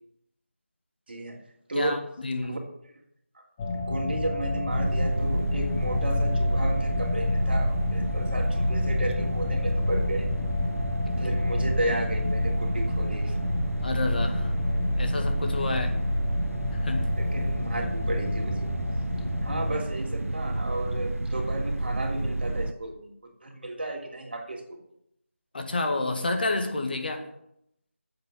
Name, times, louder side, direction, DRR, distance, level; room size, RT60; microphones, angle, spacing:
voice 1, 1.1-1.4 1.7-2.0 2.4-2.6 3.3-3.4 3.9-10.3 11.2-13.3 17.2-18.7 19.4-24.8, right 1 dB, 50° right, 1 dB, 2.9 m, -33 dB
voice 2, 1.7-2.6 11.1-11.2 13.8-14.5 15.0-16.0 16.8-17.1 25.5-27.3, left 2 dB, 40° left, 5 dB, 1.8 m, -29 dB
sound 1, 3.6-19.8, left 3 dB, 15° left, 0.9 m, -30 dB
sound 2, 4.7-22.7, right 2 dB, 80° right, 0.9 m, -30 dB
11.0 x 7.9 x 7.6 m, 0.77 s
figure-of-eight pair, 165°, 7 cm